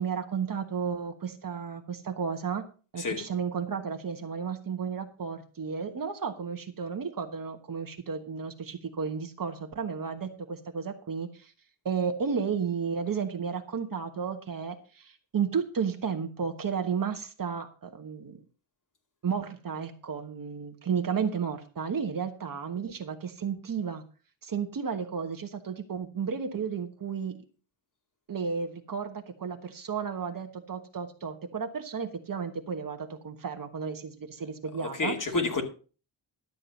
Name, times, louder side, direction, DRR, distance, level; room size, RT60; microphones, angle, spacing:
voice 1, 0.0-2.6 2.9-11.5 11.8-18.4 19.2-24.0 24.4-27.4 28.3-35.2, right 6 dB, 45° right, 6 dB, 1.3 m, -33 dB
voice 2, 34.8-35.6, left 3 dB, 40° left, 3 dB, 2.5 m, -29 dB
12.0 x 7.7 x 5.3 m, 0.36 s
cardioid pair, 115°, 49 cm